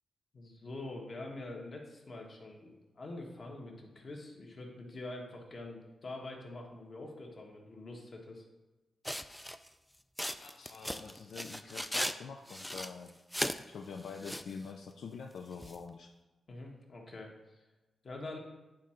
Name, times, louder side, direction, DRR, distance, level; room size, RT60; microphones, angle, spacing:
voice 1, 0.3-8.4 16.5-17.6 18.0-18.4, left 2 dB, 40° left, 0 dB, 1.4 m, -45 dB
sound 1, 9.0-9.7 10.2-12.1 12.5-13.6 14.0-14.5 15.6-15.8, equal, 5° left, 0.3 m, -37 dB
voice 2, 10.4-13.2 13.7-16.1, left 5 dB, 70° left, 3 dB, 0.4 m, -45 dB
9.4 x 3.7 x 4.4 m, 1.1 s
wide cardioid pair, 125°, 0 cm